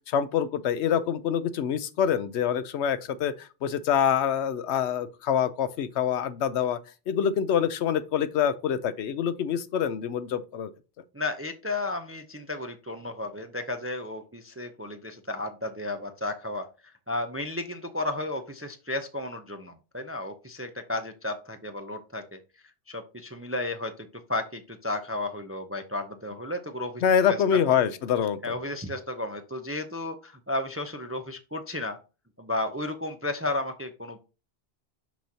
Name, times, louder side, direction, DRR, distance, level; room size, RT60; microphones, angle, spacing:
voice 1, 0.1-6.8 7.1-10.7 27.0-28.4, left 8 dB, 85° left, 0.9 m, -25 dB
voice 2, 11.1-22.4 22.9-27.0 27.3-27.6 28.4-32.0 32.4-34.2, left 2 dB, 20° right, 0.3 m, -33 dB
6.1 x 5.9 x 2.7 m
omnidirectional pair, 1.1 m